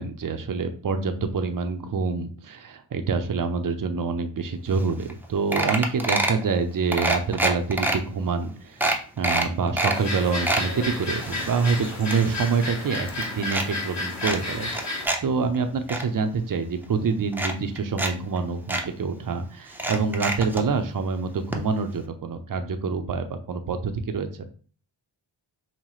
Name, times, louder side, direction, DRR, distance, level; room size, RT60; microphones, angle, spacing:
voice 1, 0.0-24.3, right 5 dB, 45° right, 7 dB, 0.6 m, -26 dB
sound 1, 4.8-4.9 5.1-5.2 5.5-6.4 6.9-8.0 8.4-8.5 8.8-10.0 10.3-10.7 11.2-12.7 12.9-13.7 14.2-15.2 15.5-16.0 16.8-16.9 17.3-18.1 18.4-18.5 18.7-18.8 19.7-20.6 21.5-21.6 21.9-22.0, right 1 dB, 5° right, 0.6 m, -26 dB
sound 2, 9.9-15.1, left 2 dB, 35° left, 1.3 m, -32 dB
5.6 x 2.1 x 3.1 m, 0.42 s
cardioid pair, 55°, 46 cm